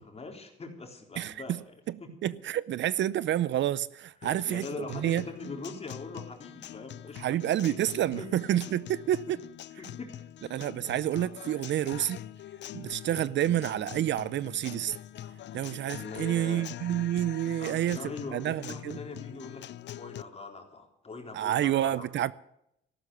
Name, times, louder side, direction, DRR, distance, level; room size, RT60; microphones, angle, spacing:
voice 1, 0.0-1.6 2.0-2.1 4.2-7.4 7.7-7.8 8.1-8.3 8.5-8.6 9.8-10.2 16.0-16.6 17.6-22.1, left 3 dB, 30° left, 3.8 m, -42 dB
voice 2, 1.2-1.6 1.9-5.2 7.2-9.4 10.5-12.2 12.7-15.0 15.5-19.0 21.3-22.3, right 12 dB, 65° right, 0.6 m, -29 dB
Guitar, 4.2-20.2, left 12 dB, 65° left, 0.5 m, -44 dB
14.0 x 12.0 x 6.8 m
cardioid pair, 90°, 20 cm